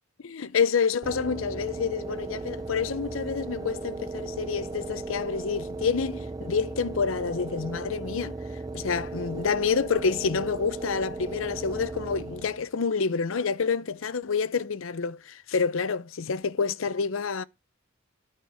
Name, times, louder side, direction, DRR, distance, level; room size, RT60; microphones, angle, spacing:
voice 1, 0.2-8.3 8.7-17.4, left 5 dB, 90° left, 0.6 m, -28 dB
sound 1, 1.0-12.7, right 3 dB, 20° right, 0.5 m, -36 dB
13.5 x 4.5 x 4.8 m
head